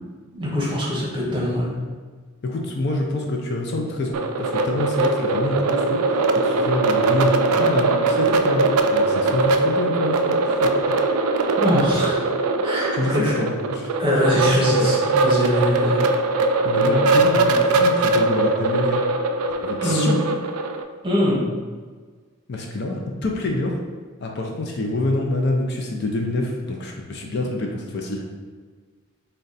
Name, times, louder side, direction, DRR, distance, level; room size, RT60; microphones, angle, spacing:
voice 1, 0.3-1.7 11.6-12.2 12.6-13.4 14.0-16.0 19.8-20.2 21.0-21.4, left 1 dB, 20° right, -5 dB, 0.9 m, -22 dB
voice 2, 2.4-6.0 6.4-10.3 10.6-10.9 12.9-13.9 14.4-14.9 16.6-19.0 19.6-20.2 22.5-23.8 24.2-28.3, left 2 dB, 50° left, 1 dB, 0.4 m, -26 dB
sound 1, 4.1-20.8, right 3 dB, 85° right, 0.3 m, -21 dB
3.7 x 2.2 x 3.9 m, 1.5 s
head